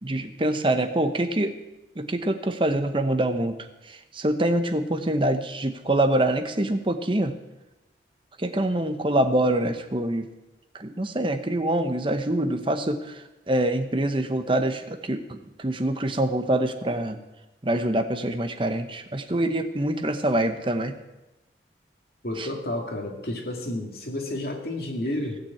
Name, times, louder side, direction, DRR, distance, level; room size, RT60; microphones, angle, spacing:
voice 1, 0.0-1.6 2.0-3.6 3.9-7.3 8.4-10.3 10.7-17.2 17.6-20.9 22.4-22.5, right 1 dB, 30° right, 8 dB, 1.0 m, -25 dB
voice 2, 22.2-25.4, left 1 dB, 60° left, 1 dB, 2.3 m, -31 dB
16.5 x 6.1 x 8.5 m, 1.0 s
head